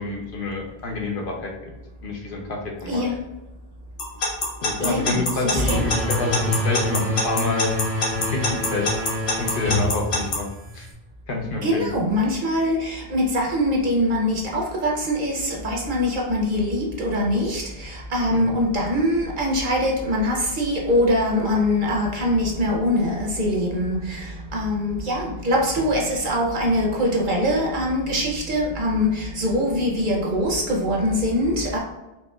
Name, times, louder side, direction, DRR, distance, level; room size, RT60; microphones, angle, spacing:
voice 1, 0.0-1.5 2.0-3.1 4.6-7.7 8.3-8.9 9.4-10.5 10.7-10.9 11.3-11.9 18.3-18.5, left 3 dB, 60° left, 0 dB, 0.8 m, -28 dB
voice 2, 2.9-3.2 4.8-5.8 11.6-24.2 24.5-31.8, left 1 dB, 55° right, -2 dB, 0.9 m, -23 dB
Alarm / Clock, 4.0-10.4, left 3 dB, 85° left, 1.2 m, -24 dB
sound 1, 5.5-10.9, left 1 dB, 85° right, 1.2 m, -26 dB
4.2 x 2.9 x 2.3 m, 1.0 s
omnidirectional pair, 1.0 m